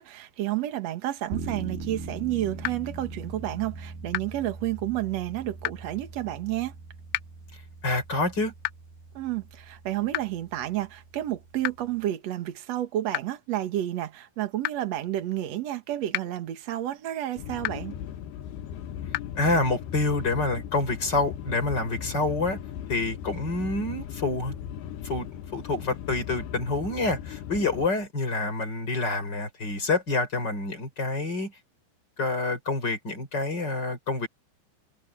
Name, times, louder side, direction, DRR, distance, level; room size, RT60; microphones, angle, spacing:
voice 1, 0.0-6.7 9.1-17.9, right 13 dB, 70° right, 1.5 m, -30 dB
sound 1, 1.3-12.1, right 3 dB, 55° right, 6.0 m, -41 dB
sound 2, 2.6-2.7 4.1-4.2 5.6-5.7 7.1-7.2 8.6-8.7 10.1-10.2 11.6-11.7 13.1-13.2 14.6-14.7 16.1-16.2 17.6-17.7 19.1-19.2, left 22 dB, 90° left, 2.4 m, -28 dB
voice 2, 7.8-8.5 19.4-22.6 22.9-24.5 25.0-31.5 32.2-34.3, left 3 dB, 25° left, 4.3 m, -27 dB
sound 3, 17.4-27.9, left 10 dB, 70° left, 2.8 m, -38 dB
omnidirectional pair, 5.4 m